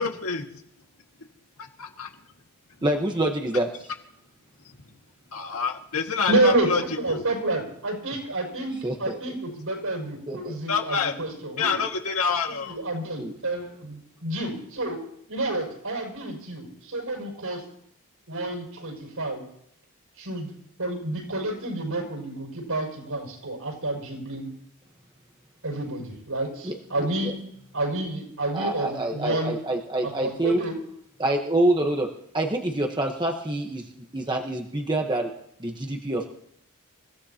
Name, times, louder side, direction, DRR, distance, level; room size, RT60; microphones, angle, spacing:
voice 1, 0.0-0.4 1.8-2.1 5.3-6.8 7.1-7.2 10.7-11.1 11.6-12.8, left 5 dB, 75° left, 3 dB, 2.0 m, -27 dB
voice 2, 2.8-3.7 8.8-9.2 10.3-10.6 13.2-13.3 26.6-27.3 28.5-30.6 31.2-32.1 32.3-33.8 34.1-35.3 35.6-36.3, right 1 dB, 20° right, 1 dB, 1.2 m, -26 dB
voice 3, 6.3-8.7 9.0-11.8 12.6-17.6 18.3-19.4 20.2-20.5 20.8-24.5 25.6-27.4 27.7-29.6 30.0-30.7, right 2 dB, 75° right, 1 dB, 6.5 m, -29 dB
28.0 x 16.5 x 2.9 m, 0.70 s
head